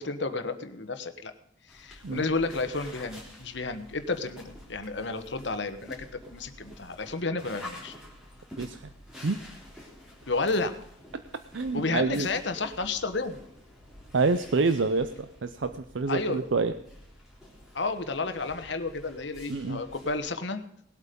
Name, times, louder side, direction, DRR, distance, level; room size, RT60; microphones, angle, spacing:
voice 1, 0.0-1.3 1.7-7.9 10.2-10.8 11.7-13.4 16.1-16.4 17.7-20.6, left 3 dB, 65° left, 8 dB, 1.2 m, -31 dB
sound 1, 1.7-20.2, left 1 dB, ahead, 3.3 m, -49 dB
voice 2, 8.6-8.9 9.2-9.4 11.5-12.3 14.1-16.7 19.5-19.8, right 3 dB, 75° right, 10 dB, 0.6 m, -27 dB
19.0 x 8.2 x 5.3 m, 0.73 s
head